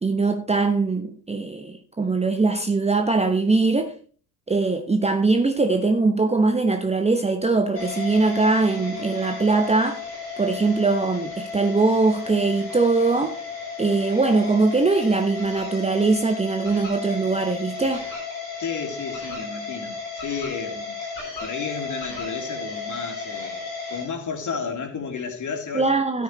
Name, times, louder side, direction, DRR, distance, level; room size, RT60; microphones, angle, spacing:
voice 1, 0.0-3.9 4.5-10.0 10.4-13.4 13.8-18.1 25.7-26.2, right 3 dB, 15° right, 1.0 m, -21 dB
sound 1, 7.7-24.0, left 4 dB, 90° left, 3.7 m, -34 dB
voice 2, 18.6-25.9, left 5 dB, 35° left, 3.3 m, -32 dB
13.0 x 9.6 x 3.2 m
figure-of-eight pair, 55°, 49 cm